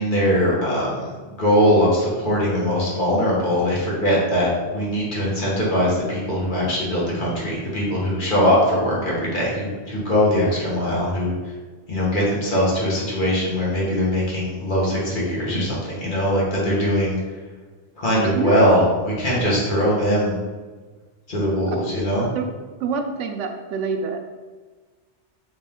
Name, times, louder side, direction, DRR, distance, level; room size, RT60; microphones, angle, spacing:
voice 1, 0.0-11.3 11.9-17.2 18.0-20.4 21.3-22.3, equal, 45° left, -5 dB, 1.3 m, -21 dB
voice 2, 18.1-18.6 22.3-22.5 22.8-24.2, right 5 dB, 85° right, 5 dB, 0.9 m, -26 dB
4.1 x 3.6 x 3.5 m, 1.4 s
omnidirectional pair, 1.2 m